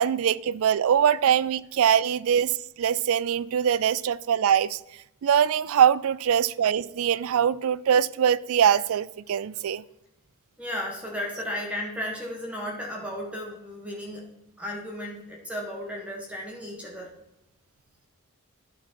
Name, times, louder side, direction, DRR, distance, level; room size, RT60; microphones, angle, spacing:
voice 1, 0.0-4.8 5.2-9.8, right 8 dB, 70° right, 0.3 m, -23 dB
voice 2, 10.6-17.1, left 1 dB, 5° right, 1.4 m, -34 dB
11.5 x 4.5 x 4.4 m
head